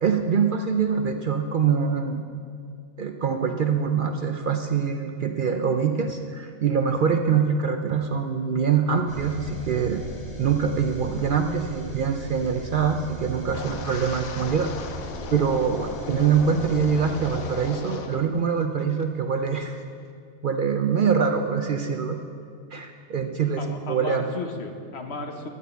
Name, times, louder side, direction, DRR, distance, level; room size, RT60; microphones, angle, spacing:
voice 1, 0.0-2.2 3.0-10.0 10.4-14.7 15.3-19.8 20.4-22.2 22.7-24.3, right 6 dB, 65° right, 5 dB, 0.5 m, -24 dB
sound 1, 9.1-17.7, right 1 dB, 30° left, 2.3 m, -38 dB
Wind, 13.5-18.3 18.6-19.0 19.5-19.8, left 6 dB, 85° left, 1.2 m, -38 dB
voice 2, 23.6-25.5, left 3 dB, 55° left, 4 dB, 1.2 m, -34 dB
11.0 x 6.4 x 8.1 m, 2.2 s
omnidirectional pair, 1.4 m